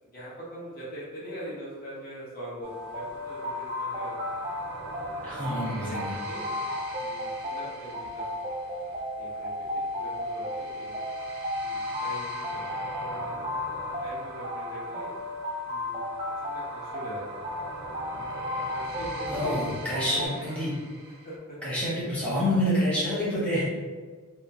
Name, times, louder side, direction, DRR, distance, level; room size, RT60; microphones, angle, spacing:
voice 1, 0.0-4.5 5.1-6.0 6.3-6.5 7.0-11.0 11.5-12.7 13.0-15.1 15.6-16.0 16.4-17.6 18.5-20.6 21.2-21.6 23.3-23.4, equal, 40° left, -7 dB, 0.6 m, -43 dB
sound 1, 2.6-20.3, left 1 dB, 25° right, 0.3 m, -34 dB
sound 2, 2.7-21.4, right 2 dB, 90° right, 0.5 m, -42 dB
voice 2, 5.2-6.1 19.3-20.7 21.6-23.6, equal, 5° left, -9 dB, 0.7 m, -27 dB
2.9 x 2.2 x 2.4 m, 1.5 s
head